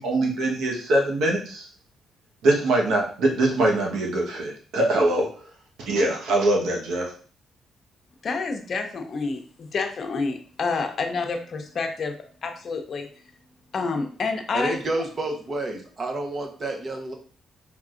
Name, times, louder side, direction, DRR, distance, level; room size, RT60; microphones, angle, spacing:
voice 1, 0.0-1.7 2.4-5.3 5.9-7.1, right 2 dB, 80° right, -1 dB, 1.2 m, -23 dB
voice 2, 8.2-13.1 13.7-14.8, left 4 dB, 50° left, 5 dB, 0.7 m, -28 dB
voice 3, 14.5-17.1, right 2 dB, 40° right, 3 dB, 0.9 m, -29 dB
4.6 x 3.6 x 2.5 m, 0.43 s
cardioid pair, 90°, 0 cm